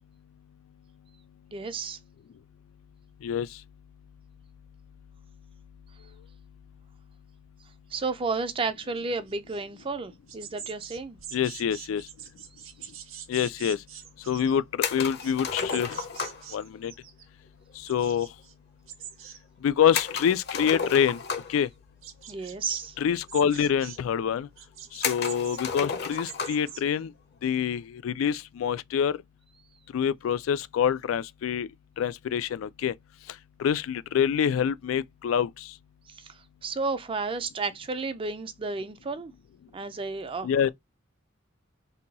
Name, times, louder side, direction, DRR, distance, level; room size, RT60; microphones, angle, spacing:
voice 1, 1.5-2.0 7.9-11.2 22.3-23.0 36.2-39.3 39.7-40.5, right 4 dB, 25° right, 0.4 m, -32 dB
sound 1, 9.0-9.8 10.1-17.3 17.5-18.5 18.9-19.4 19.7-20.3 20.6-21.2 21.8-22.8 23.2-24.0 24.6-26.8, right 9 dB, 85° right, 0.6 m, -45 dB
voice 2, 11.3-12.0 13.3-13.8 14.3-14.6 14.9-15.9 16.5-16.9 17.9-18.3 19.6-21.2 21.5-21.7 23.0-24.5 25.0-27.1 27.4-29.1 29.9-31.7 32.0-32.9 33.6-35.5 40.4-40.7, left 8 dB, 90° left, 0.3 m, -26 dB
sound 2, 14.8-16.5 19.9-21.7 22.7-22.8 23.1-23.2 24.0-24.1 25.0-26.7, left 6 dB, 55° left, 0.7 m, -32 dB
2.8 x 2.3 x 3.9 m
head